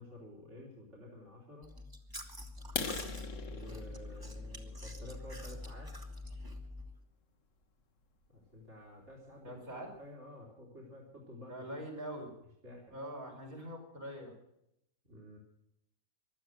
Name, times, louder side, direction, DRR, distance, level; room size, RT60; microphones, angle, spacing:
voice 1, 0.0-1.7 3.4-5.9 8.3-9.6 10.0-11.6 12.6-13.0 15.0-15.4, left 1 dB, 50° right, -3 dB, 3.5 m, -51 dB
Chewing mastication, 1.6-6.9, left 2 dB, 15° right, 1.8 m, -45 dB
sound 1, 2.6-6.4 6.9-7.1 7.6-7.7 8.1-8.3 8.6-8.7 9.1-9.2 9.5-10.0, left 5 dB, 60° left, 1.6 m, -42 dB
voice 2, 9.4-9.9 11.5-12.3 12.9-14.3, equal, 65° right, -1 dB, 5.6 m, -43 dB
16.0 x 11.5 x 7.8 m, 0.81 s
omnidirectional pair, 1.6 m